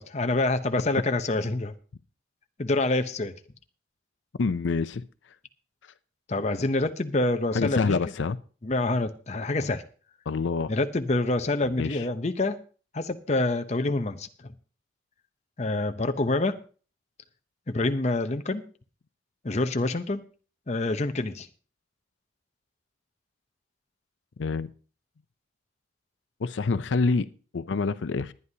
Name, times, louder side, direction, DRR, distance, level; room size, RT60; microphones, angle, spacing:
voice 1, 0.0-1.7 2.6-3.3 6.3-8.0 8.6-9.8 10.7-12.6 12.9-14.5 15.6-16.6 17.7-18.7 19.4-20.2 20.7-21.5, left 2 dB, 35° left, 0.7 m, -26 dB
voice 2, 4.4-5.0 7.5-8.4 10.3-10.7 11.8-12.0 24.4-24.7 26.4-27.3 27.5-28.3, left 4 dB, 80° left, 0.5 m, -26 dB
20.5 x 9.7 x 2.8 m
head